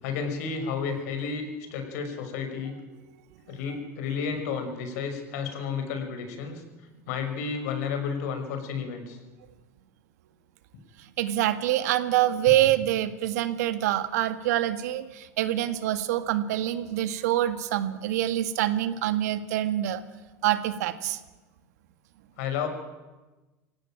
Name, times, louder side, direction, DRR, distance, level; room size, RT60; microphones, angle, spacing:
voice 1, 0.0-1.5 1.7-2.8 3.5-6.6 7.1-9.2 22.4-22.7, left 6 dB, 65° left, 6 dB, 6.1 m, -31 dB
voice 2, 11.2-20.0 20.4-21.2, right 13 dB, 70° right, 11 dB, 1.9 m, -26 dB
25.0 x 17.0 x 9.2 m, 1.2 s
hypercardioid pair, 85°, 9 cm